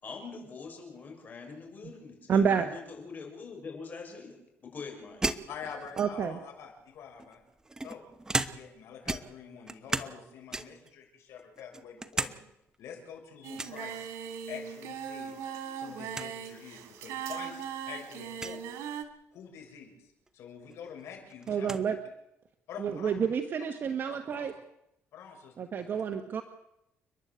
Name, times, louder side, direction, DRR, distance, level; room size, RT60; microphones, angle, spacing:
voice 1, 0.0-5.3, left 4 dB, 35° left, 2 dB, 6.5 m, -44 dB
voice 2, 2.3-2.7 6.0-6.4 21.5-22.0 22.8-24.5 25.6-26.4, right 7 dB, 45° right, 6 dB, 1.4 m, -29 dB
sound 1, 5.2-6.4 7.2-8.8 9.1-10.2 10.5-10.9 11.4-12.4 12.7-12.8 13.6-13.8 15.3-15.6 15.9-16.0 16.1-16.3 17.1-17.2 18.3-18.6 20.3-20.4 20.7-21.9, right 2 dB, 15° right, 1.1 m, -35 dB
voice 3, 5.5-7.4 7.8-8.1 8.5-12.4 12.8-14.1 14.5-15.5 15.8-18.8 19.3-21.7 22.7-23.1 24.1-24.5 25.1-26.0, left 7 dB, 70° left, 2 dB, 7.0 m, -46 dB
Singing, 13.4-19.0, right 8 dB, 85° right, 2.7 m, -39 dB
30.0 x 11.0 x 8.1 m, 0.84 s
cardioid pair, 115°, 5 cm